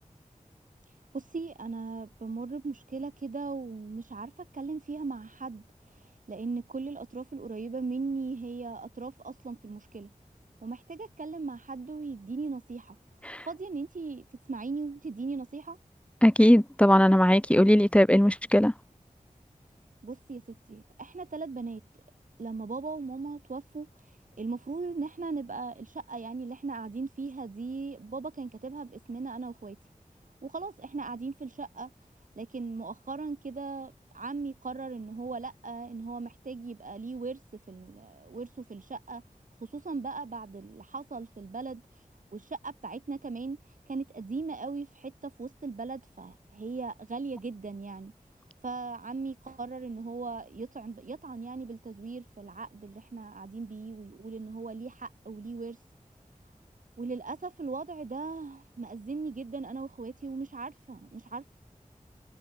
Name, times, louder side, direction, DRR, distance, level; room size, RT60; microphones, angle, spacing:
voice 1, 0.9-10.1 10.6-13.0 13.4-15.8 20.0-21.8 22.4-29.8 30.4-31.9 32.4-39.2 39.6-42.0 42.3-48.1 48.6-55.8 57.0-61.5, right 4 dB, 80° right, 2.9 m, -38 dB
voice 2, 16.2-18.7, equal, 10° left, 2.2 m, -19 dB
wide cardioid pair, 45°, 13 cm